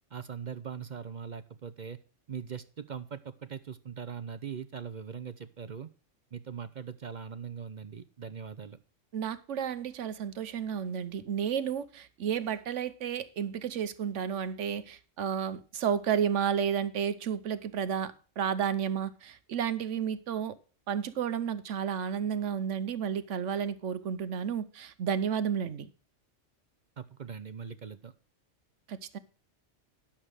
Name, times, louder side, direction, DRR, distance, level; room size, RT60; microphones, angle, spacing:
voice 1, 0.1-2.0 2.3-5.9 6.3-8.8 27.0-28.1, right 7 dB, 50° right, 0.6 m, -41 dB
voice 2, 9.1-20.6 20.9-25.9 28.9-29.2, right 8 dB, 80° right, 1.1 m, -32 dB
11.0 x 7.2 x 4.8 m
omnidirectional pair, 1.2 m